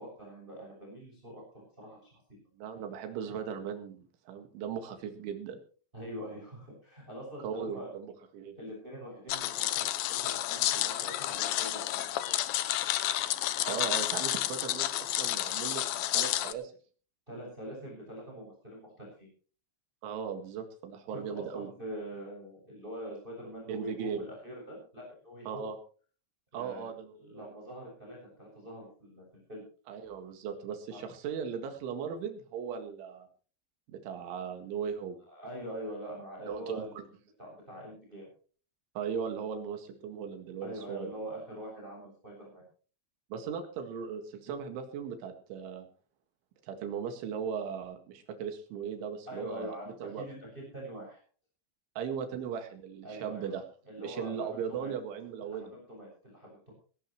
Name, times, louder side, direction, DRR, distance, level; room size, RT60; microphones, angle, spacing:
voice 1, 0.0-2.4 5.9-7.9 8.5-12.4 17.3-19.3 21.1-25.7 26.5-26.9 27.2-29.6 30.9-31.0 35.3-37.0 37.4-38.3 40.6-42.6 49.2-51.2 53.0-53.6 53.8-54.9 55.5-56.7, right 1 dB, 10° right, -1 dB, 6.6 m, -44 dB
voice 2, 2.5-5.6 7.4-8.6 13.6-16.7 20.0-21.7 23.7-24.3 25.5-25.8 26.5-27.5 29.9-33.3 33.9-35.2 36.5-37.0 39.0-41.1 43.3-45.9 46.6-49.7 50.0-50.2 52.0-53.6 54.0-55.7, right 7 dB, 85° right, 5 dB, 4.4 m, -38 dB
sound 1, 9.3-16.5, left 14 dB, 85° left, 2.1 m, -31 dB
18.5 x 17.0 x 3.1 m, 0.41 s
omnidirectional pair, 5.3 m